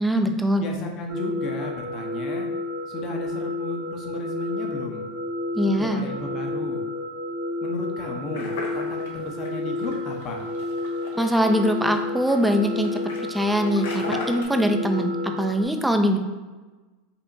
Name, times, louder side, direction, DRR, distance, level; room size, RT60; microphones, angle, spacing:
voice 1, 0.0-0.7 5.5-6.0 11.2-13.0 13.3-16.2, equal, 5° right, 5 dB, 0.4 m, -22 dB
voice 2, 0.6-2.5 2.9-5.1 5.8-6.8 7.6-10.5, left 3 dB, 45° left, 1 dB, 0.8 m, -34 dB
sound 1, 1.1-15.6, left 2 dB, 50° right, 0.9 m, -31 dB
sound 2, 8.3-14.4, left 3 dB, 80° left, 0.8 m, -38 dB
5.4 x 2.8 x 2.7 m, 1.3 s
hypercardioid pair, 115°, 0 cm